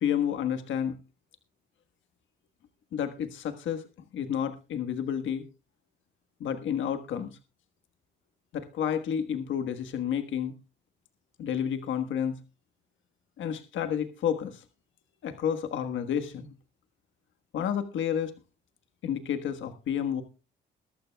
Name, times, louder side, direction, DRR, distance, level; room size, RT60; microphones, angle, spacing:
voice 1, 0.0-1.0 2.9-3.9 4.1-5.4 6.4-7.4 8.5-10.5 11.4-12.4 13.4-14.6 15.2-16.5 17.5-18.3 19.0-20.2, left 8 dB, 75° left, 8 dB, 1.4 m, -30 dB
21.0 x 12.5 x 2.3 m, 0.31 s
cardioid pair, 90°, 20 cm